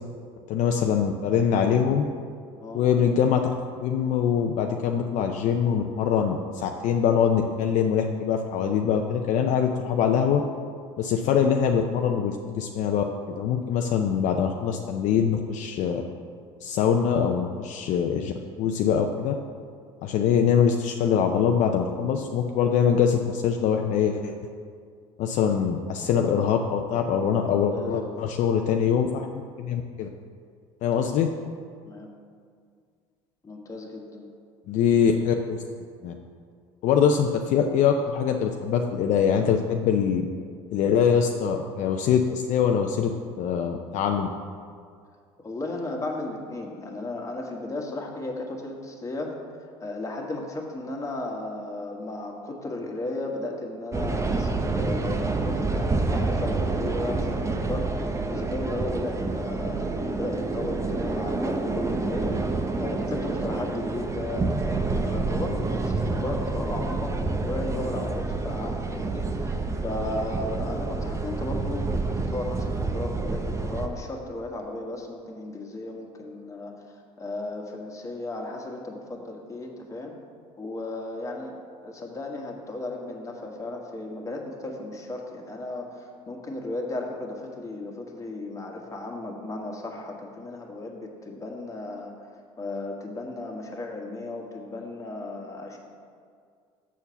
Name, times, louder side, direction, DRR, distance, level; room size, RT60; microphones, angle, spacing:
voice 1, 0.5-2.0 2.7-3.5 3.8-10.4 11.0-13.0 13.4-16.0 16.6-18.3 18.6-19.3 20.0-24.3 25.2-29.3 29.6-30.1 30.8-31.3 34.7-35.6 36.0-36.1 36.8-40.2 40.7-43.1 43.4-44.3, left 7 dB, 60° left, 3 dB, 0.5 m, -23 dB
voice 2, 27.7-28.3 31.0-31.1 31.8-32.1 33.4-34.3 45.4-49.3 49.8-62.4 62.8-76.8 77.2-80.1 80.6-81.6 81.8-92.1 92.6-95.8, left 2 dB, 20° left, 0 dB, 1.5 m, -35 dB
sound 1, 53.9-73.9, right 3 dB, 20° right, 0.7 m, -28 dB
7.2 x 4.6 x 6.9 m, 2.1 s
supercardioid pair, 80°, 14 cm